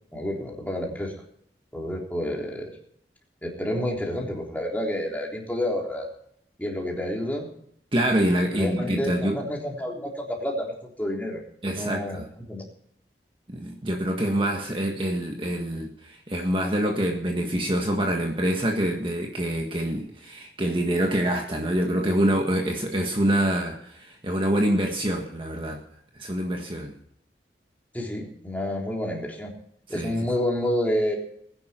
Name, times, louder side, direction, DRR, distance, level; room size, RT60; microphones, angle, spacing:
voice 1, 0.1-1.1 1.7-2.7 3.4-6.1 6.6-7.5 8.5-11.4 11.7-12.6 27.9-29.5 29.9-31.2, left 1 dB, 10° left, -1 dB, 3.5 m, -29 dB
voice 2, 7.9-9.4 11.6-12.2 13.5-25.8 26.2-27.0 29.9-30.3, right 1 dB, 30° right, 1 dB, 1.6 m, -26 dB
20.5 x 10.5 x 4.4 m, 0.69 s
head